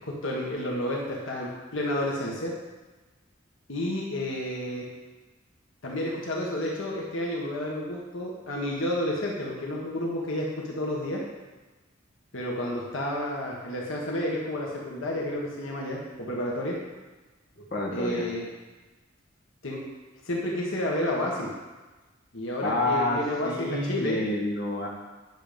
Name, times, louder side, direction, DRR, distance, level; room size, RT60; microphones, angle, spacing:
voice 1, 0.0-2.5 3.7-4.9 5.8-11.2 12.3-16.8 17.9-18.4 19.6-19.8 20.2-21.5 22.3-24.2, left 1 dB, 80° left, -2 dB, 1.6 m, -30 dB
voice 2, 17.6-18.3 22.6-24.9, left 1 dB, 50° left, -3 dB, 2.0 m, -28 dB
10.0 x 6.8 x 5.2 m, 1.2 s
head